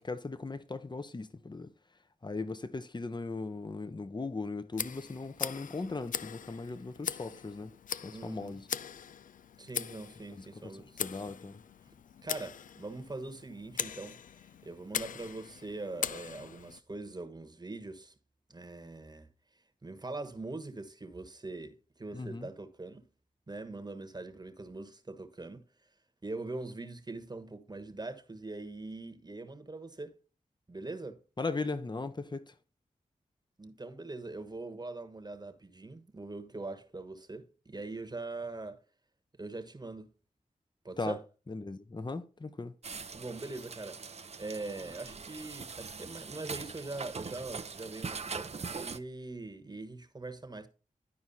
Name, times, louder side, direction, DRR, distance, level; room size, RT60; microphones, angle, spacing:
voice 1, 0.0-1.7 2.2-7.7 8.0-8.7 10.3-10.5 11.0-11.6 22.1-22.5 31.4-32.5 41.0-41.2 41.5-42.7, left 3 dB, 30° left, 0.9 m, -38 dB
Tick, 4.7-16.8, left 8 dB, 70° left, 0.4 m, -41 dB
voice 2, 8.1-8.6 9.6-11.0 12.2-18.1 18.5-19.3 19.8-23.1 23.5-25.7 26.2-30.2 30.7-31.2 33.6-38.8 39.4-40.1 40.8-41.2 43.1-50.7, right 2 dB, 30° right, 1.3 m, -42 dB
sound 1, 42.8-49.0, right 5 dB, 50° right, 0.6 m, -42 dB
11.0 x 4.7 x 4.1 m
cardioid pair, 45°, 14 cm